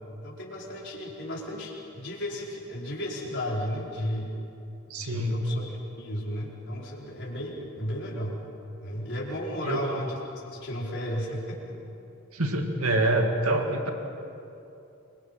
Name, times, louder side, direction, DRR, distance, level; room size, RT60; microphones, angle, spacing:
voice 1, 0.2-4.3 5.0-5.7 6.0-8.4 8.8-10.2 10.4-11.8, equal, 55° left, -4 dB, 5.1 m, -34 dB
voice 2, 4.9-5.4 9.6-9.8 12.3-13.9, right 1 dB, 80° right, 3 dB, 2.5 m, -26 dB
28.5 x 24.0 x 5.9 m, 2.7 s
head